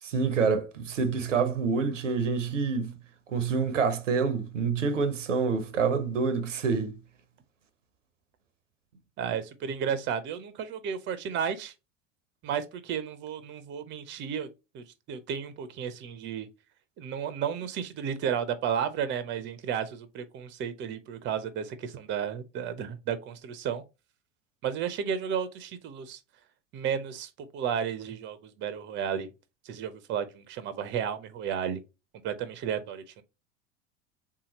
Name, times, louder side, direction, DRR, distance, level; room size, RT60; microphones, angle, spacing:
voice 1, 0.0-3.0 3.3-7.0, right 5 dB, 80° right, 0.6 m, -27 dB
voice 2, 9.2-11.7 12.4-14.5 14.7-16.5 17.0-23.8 24.6-26.2 26.7-29.3 29.7-31.8 32.2-33.2, right 8 dB, 30° right, 0.5 m, -33 dB
3.6 x 2.8 x 2.8 m
figure-of-eight pair, 75°, 36 cm